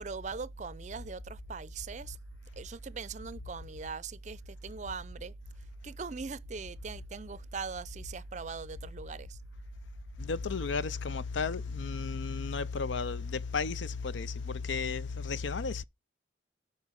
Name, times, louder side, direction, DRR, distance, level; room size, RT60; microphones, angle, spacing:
voice 1, 0.0-2.2 2.6-5.3 5.8-9.4, right 4 dB, 35° right, 0.5 m, -40 dB
voice 2, 10.2-15.8, left 5 dB, 75° left, 0.6 m, -33 dB
13.0 x 5.1 x 5.8 m
head